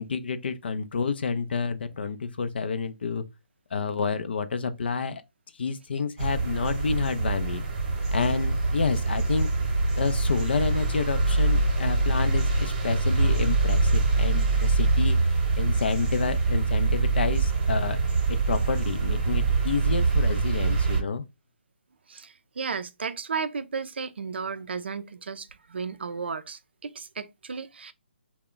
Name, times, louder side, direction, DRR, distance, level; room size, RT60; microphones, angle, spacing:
voice 1, 0.0-3.2 3.7-5.2 5.6-7.6 8.1-9.5 10.0-15.2 15.5-18.0 18.3-21.2, left 5 dB, 60° left, 0.4 m, -29 dB
sound 1, 6.2-21.0, right 3 dB, 35° right, 1.0 m, -24 dB
voice 2, 22.1-27.9, right 5 dB, 65° right, 0.4 m, -34 dB
2.3 x 2.1 x 3.7 m
figure-of-eight pair, 150°, 6 cm